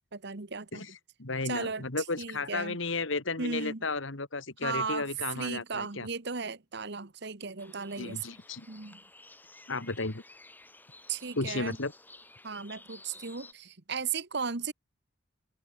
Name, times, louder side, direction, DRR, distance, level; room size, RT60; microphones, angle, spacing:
voice 1, 0.1-0.8 1.4-1.8 2.2-2.8 3.4-3.8 4.6-5.1 5.3-8.4 8.7-9.0 11.1-11.8 12.4-14.7, right 5 dB, 55° right, 1.4 m, -36 dB
voice 2, 1.2-6.1 8.0-8.7 9.7-10.2 11.4-11.9, left 3 dB, 70° left, 2.1 m, -33 dB
sound 1, 7.6-13.5, left 2 dB, 10° left, 6.5 m, -54 dB
open air
head